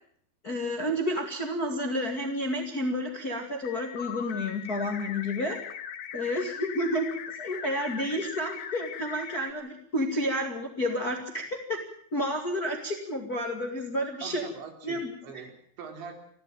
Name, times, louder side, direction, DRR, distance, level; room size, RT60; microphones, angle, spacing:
voice 1, 0.4-5.6 6.1-11.4 11.7-11.8 12.1-14.4 14.8-15.1, equal, 30° left, 3 dB, 1.8 m, -30 dB
sound 1, 3.6-9.5, left 8 dB, 60° left, 2.8 m, -40 dB
voice 2, 14.2-16.1, right 6 dB, 75° right, 5 dB, 5.7 m, -43 dB
30.0 x 12.0 x 9.0 m, 0.64 s
omnidirectional pair, 5.3 m